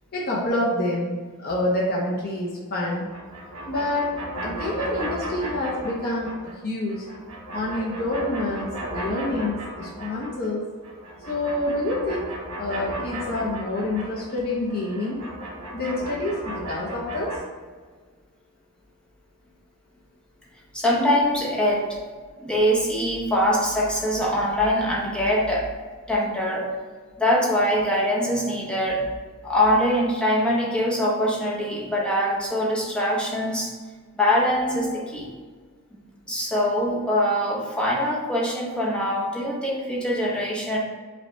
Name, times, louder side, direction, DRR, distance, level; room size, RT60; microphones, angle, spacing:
voice 1, 0.1-3.0 3.7-6.3 6.6-7.1 7.5-10.6 11.3-12.3 12.6-15.2 15.7-17.4, left 1 dB, 45° left, -4 dB, 0.7 m, -27 dB
sound 1, 3.0-6.6 6.9-10.5 10.8-17.4, right 1 dB, 90° right, 1.1 m, -35 dB
voice 2, 20.7-22.0 22.4-25.7 26.1-26.7 27.2-29.0 29.4-33.7 34.2-35.3 36.3-40.8, equal, 5° left, -3 dB, 0.7 m, -23 dB
5.1 x 2.3 x 4.3 m, 1.5 s
head